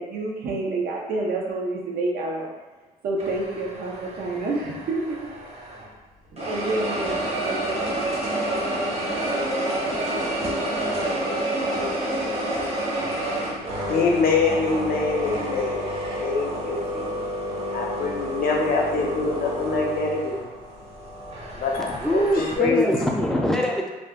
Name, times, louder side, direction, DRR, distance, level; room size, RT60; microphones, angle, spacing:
voice 1, 0.0-2.5 3.0-5.3 6.4-7.9, right 2 dB, 70° right, -1 dB, 0.6 m, -28 dB
sound 1, 3.2-6.0 6.4-22.6, right 1 dB, 40° right, 0.8 m, -29 dB
voice 2, 13.0-15.9 16.2-17.2 17.7-20.4 21.6-22.8, left 4 dB, 65° left, -1 dB, 0.6 m, -25 dB
voice 3, 21.8-23.9, equal, 5° left, -1 dB, 0.4 m, -23 dB
2.4 x 2.2 x 3.5 m, 1.1 s
cardioid pair, 95°, 16 cm